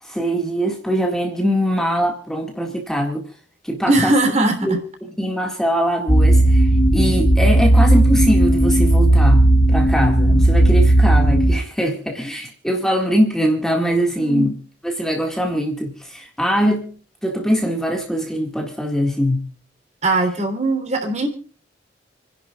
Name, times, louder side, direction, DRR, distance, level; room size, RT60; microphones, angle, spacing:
voice 1, 0.0-3.3 3.6-4.8 5.2-14.5 14.8-16.9 17.2-19.5, equal, 5° left, 1.9 m, -22 dB
voice 2, 3.9-4.8 14.2-14.5 20.0-21.3, right 2 dB, 35° right, 3.3 m, -20 dB
sound 1, 6.1-11.6, right 1 dB, 65° left, 2.3 m, -14 dB
29.5 x 11.0 x 2.4 m
head